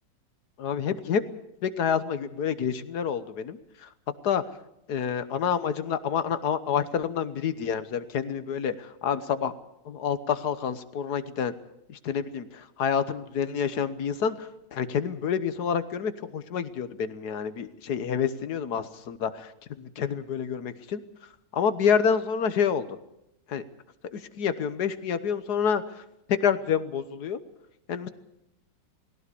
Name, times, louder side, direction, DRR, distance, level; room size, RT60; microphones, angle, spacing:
voice 1, 0.6-1.2 1.6-3.6 4.2-4.4 4.9-9.5 9.8-11.5 11.9-19.5 19.8-21.0 21.5-22.9 23.5-23.6 24.1-25.8 26.3-27.4 27.9-28.1, left 7 dB, 65° left, 12 dB, 1.6 m, -28 dB
19.0 x 17.0 x 8.5 m, 0.82 s
omnidirectional pair, 1.9 m